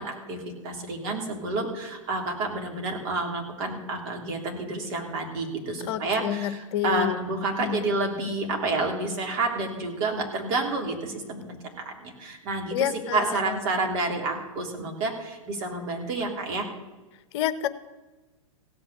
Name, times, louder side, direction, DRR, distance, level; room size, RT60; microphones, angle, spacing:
voice 1, 0.0-12.9 13.1-16.7, right 3 dB, 50° right, 1 dB, 3.4 m, -29 dB
voice 2, 5.9-7.2 7.6-7.8 12.7-13.6 17.3-17.7, left 12 dB, 50° left, 12 dB, 0.8 m, -28 dB
16.0 x 6.1 x 8.7 m, 1.2 s
figure-of-eight pair, 105°, 18 cm